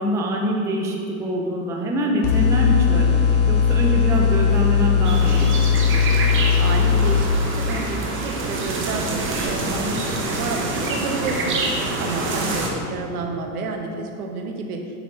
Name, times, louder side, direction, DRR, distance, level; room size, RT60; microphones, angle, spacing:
voice 1, 0.0-5.5 9.7-10.0 12.4-12.6, equal, 5° right, 0 dB, 0.3 m, -25 dB
sound 1, 2.2-7.2, left 7 dB, 60° left, 1.2 m, -18 dB
sound 2, 2.9-9.2, left 2 dB, 35° left, 1.7 m, -39 dB
sound 3, 5.0-12.7, right 2 dB, 30° right, 1.0 m, -26 dB
voice 2, 6.6-14.8, right 4 dB, 80° right, 3 dB, 1.1 m, -30 dB
8.1 x 5.8 x 3.2 m, 2.4 s
supercardioid pair, 125°, 43 cm